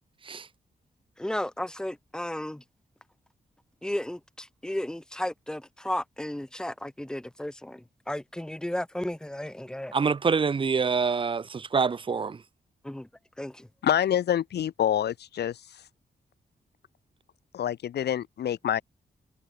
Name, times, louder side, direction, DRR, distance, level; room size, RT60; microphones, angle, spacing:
voice 1, 1.2-2.6 3.8-9.9 12.8-13.1 13.4-13.7, left 1 dB, 5° left, 1.4 m, -34 dB
voice 2, 9.9-12.4, right 5 dB, 30° right, 1.0 m, -26 dB
voice 3, 13.8-15.6 17.5-18.8, left 10 dB, 90° left, 1.0 m, -26 dB
wide cardioid pair, 175°, 17 cm